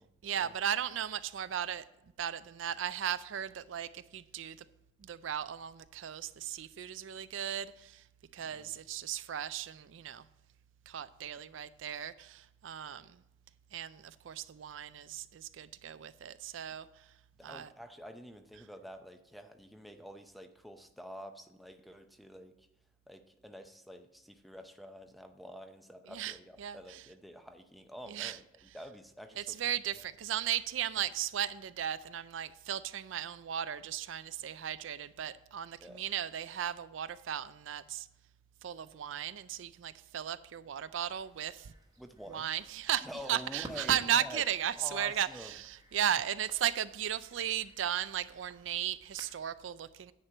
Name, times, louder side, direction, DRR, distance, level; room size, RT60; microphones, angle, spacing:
voice 1, 0.2-4.7 5.0-8.1 8.3-10.3 10.9-13.2 13.7-17.1 17.4-17.7 26.1-27.1 28.1-28.4 29.4-38.1 38.6-41.7 42.3-50.1, right 10 dB, 75° right, 0.4 m, -36 dB
voice 2, 8.4-8.7 17.4-22.7 23.1-28.4 28.7-29.6 35.8-36.0 42.0-42.5 43.0-44.4 44.8-45.5, equal, ahead, 0.6 m, -48 dB
sound 1, 41.1-49.3, right 1 dB, 20° right, 1.0 m, -54 dB
9.8 x 4.5 x 7.7 m
head